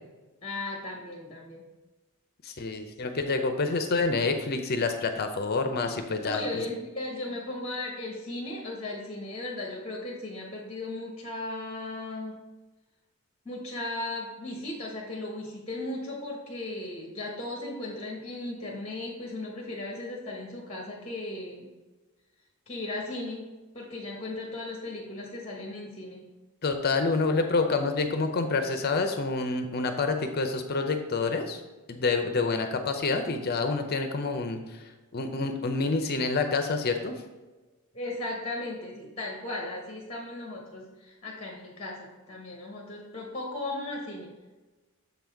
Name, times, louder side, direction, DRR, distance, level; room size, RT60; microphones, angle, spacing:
voice 1, 0.4-1.7 6.2-12.4 13.4-21.7 22.7-26.3 37.9-44.3, left 2 dB, 25° left, -1 dB, 1.0 m, -36 dB
voice 2, 2.4-6.6 26.6-31.6 31.9-34.8 35.1-37.2, left 3 dB, 45° left, 6 dB, 0.5 m, -28 dB
6.9 x 4.0 x 4.6 m, 1.2 s
head